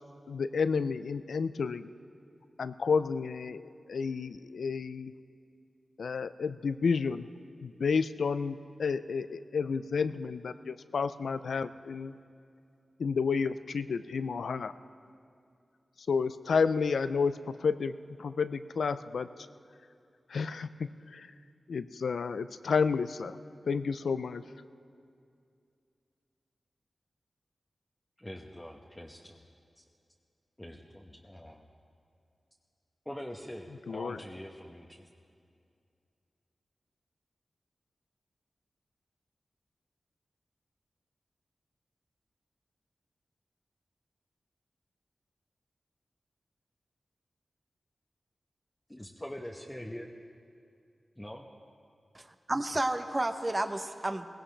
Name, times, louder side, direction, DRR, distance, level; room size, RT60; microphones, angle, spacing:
voice 1, 0.3-1.9 2.6-3.6 3.9-5.1 6.0-7.3 7.6-12.2 13.0-14.7 16.1-19.3 20.3-21.3 21.7-23.4 23.6-24.4 33.9-34.2, left 5 dB, 85° left, 12 dB, 0.4 m, -31 dB
voice 2, 28.2-29.4 29.8-29.9 30.6-31.6 33.1-35.1 48.9-50.1 51.2-51.5, equal, 15° left, -1 dB, 1.0 m, -44 dB
voice 3, 52.1-54.3, right 1 dB, 30° right, 8 dB, 0.8 m, -31 dB
18.0 x 17.0 x 3.3 m, 2.4 s
cardioid pair, 45°, 0 cm